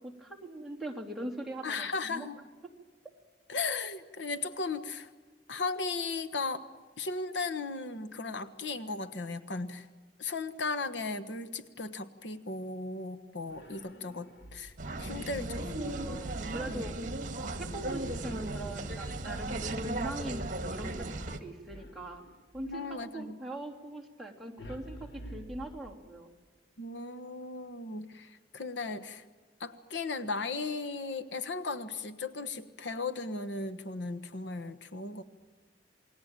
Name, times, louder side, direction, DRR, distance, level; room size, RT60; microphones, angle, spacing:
voice 1, 0.0-2.3 15.8-17.2 17.6-20.4 20.7-21.0 21.3-22.2 22.5-26.3, right 1 dB, ahead, -3 dB, 3.0 m, -41 dB
voice 2, 1.6-2.4 3.5-5.1 5.5-6.6 7.0-9.9 10.2-15.8 16.7-16.8 22.6-23.4 26.8-29.2 29.6-35.2, left 3 dB, 85° left, 12 dB, 1.4 m, -36 dB
sound 1, 13.5-15.0 18.2-19.7 21.7-22.9 24.6-26.3, right 1 dB, 70° left, 2.5 m, -49 dB
sound 2, 14.8-21.4, right 2 dB, 45° right, 1.8 m, -36 dB
28.0 x 20.5 x 9.0 m, 1.3 s
head